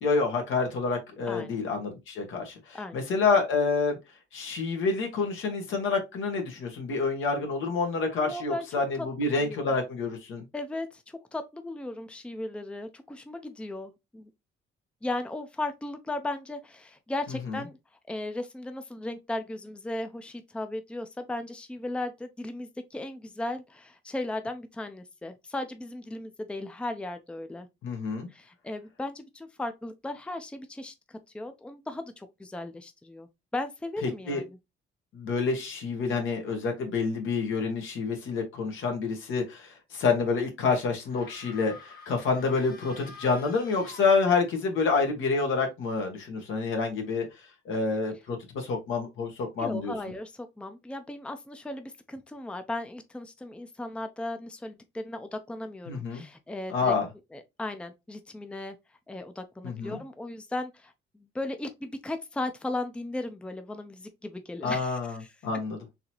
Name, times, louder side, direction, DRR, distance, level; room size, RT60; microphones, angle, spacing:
voice 1, 0.0-4.0 4.3-10.4 17.5-17.6 27.8-28.3 34.3-34.4 35.1-47.3 47.6-49.9 55.9-56.2 56.7-57.1 59.6-60.0 64.6-65.8, left 4 dB, 80° left, 1.3 m, -28 dB
voice 2, 1.3-1.6 2.7-3.0 8.1-8.7 9.0-9.6 10.5-14.3 15.0-17.8 18.1-27.7 28.3-34.6 49.6-56.9 57.3-58.8 59.1-65.3, left 2 dB, 5° left, 0.5 m, -36 dB
sound 1, 41.0-44.7, left 3 dB, 45° left, 1.4 m, -49 dB
3.9 x 2.8 x 2.9 m
cardioid pair, 90°, 20 cm